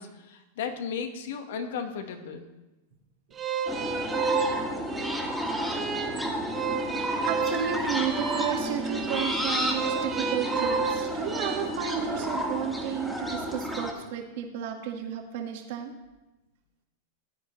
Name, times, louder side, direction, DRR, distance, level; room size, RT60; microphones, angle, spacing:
voice 1, 0.0-2.4, left 6 dB, 70° left, 6 dB, 1.4 m, -35 dB
sound 1, 3.3-11.6, right 6 dB, 25° right, 1.5 m, -31 dB
sound 2, 3.7-13.9, equal, 5° left, 2.0 m, -31 dB
voice 2, 7.2-15.9, right 8 dB, 60° right, 2 dB, 1.7 m, -33 dB
15.5 x 9.4 x 3.2 m, 1.0 s
hypercardioid pair, 120°, 0 cm